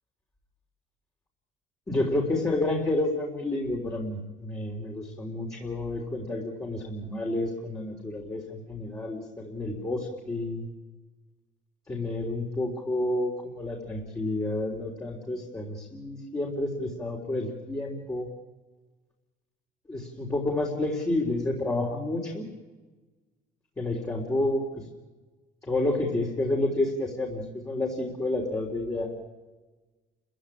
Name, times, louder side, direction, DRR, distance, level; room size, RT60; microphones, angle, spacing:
voice 1, 1.9-10.6 11.9-18.3 19.9-22.5 23.8-24.8 25.6-29.1, left 2 dB, 20° left, -1 dB, 3.8 m, -30 dB
29.5 x 15.5 x 8.8 m, 1.3 s
cardioid pair, 110°, 17 cm